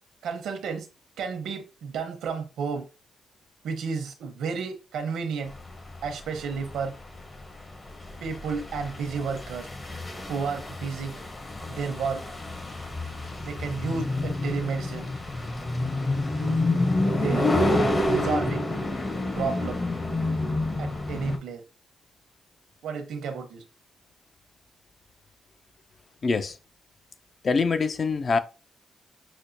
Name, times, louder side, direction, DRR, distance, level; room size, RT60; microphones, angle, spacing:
voice 1, 0.2-0.9 1.2-2.8 3.6-5.5 6.0-6.9 8.2-9.7 10.3-11.2 11.7-12.2 13.4-15.1 16.4-16.6 17.2-17.5 18.1-18.6 19.4-19.8 20.8-21.6 22.8-23.6, right 5 dB, 90° right, 0.8 m, -31 dB
sound 1, 5.5-21.4, left 2 dB, 30° left, 0.8 m, -28 dB
voice 2, 26.2-26.6 27.4-28.4, left 4 dB, 45° left, 0.5 m, -24 dB
6.0 x 2.1 x 2.6 m
cardioid pair, 90°, 0 cm